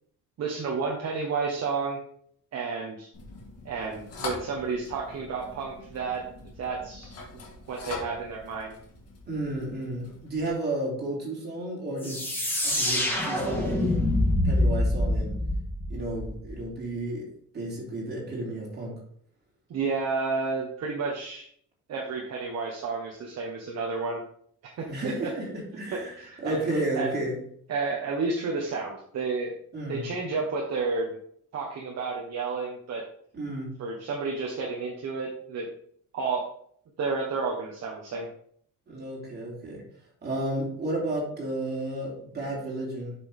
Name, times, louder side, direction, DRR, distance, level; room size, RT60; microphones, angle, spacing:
voice 1, 0.4-2.0 2.5-3.1 3.6-6.3 6.6-7.1 7.7-8.7 19.7-21.4 21.9-24.2 24.6-24.9 25.2-25.3 26.2-26.6 27.0-27.1 27.7-29.5 29.9-31.2 31.5-33.0 33.8-35.7 36.1-36.5 37.0-38.3, right 4 dB, 55° right, -1 dB, 1.3 m, -31 dB
sound 1, 3.1-10.5, left 2 dB, 50° left, 1.7 m, -42 dB
voice 2, 9.3-12.2 12.6-14.0 14.4-15.4 15.9-17.2 17.5-18.9 24.9-25.5 25.7-27.3 29.7-30.0 33.3-33.7 38.9-39.8 40.2-43.1, right 1 dB, 30° right, -3 dB, 3.1 m, -32 dB
sound 2, 12.0-16.6, left 1 dB, 5° left, 1.5 m, -26 dB
7.7 x 6.1 x 3.6 m, 0.63 s
cardioid pair, 180°, 32 cm